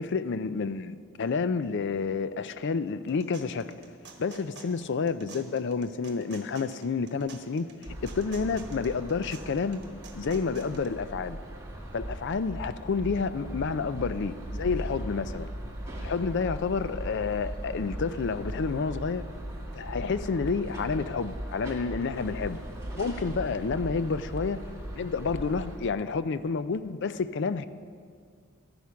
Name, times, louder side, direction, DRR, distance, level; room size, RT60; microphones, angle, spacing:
voice 1, 0.0-3.7 4.2-7.7 8.0-9.8 10.1-11.4 11.9-15.5 16.0-19.4 19.7-22.6 23.0-24.7 24.9-27.7, left 5 dB, 55° left, 13 dB, 0.4 m, -29 dB
sound 1, 2.9-10.9, right 5 dB, 50° right, 1.3 m, -50 dB
sound 2, 7.8-25.8, right 1 dB, 15° right, 1.7 m, -38 dB
13.5 x 9.4 x 5.8 m, 2.1 s
head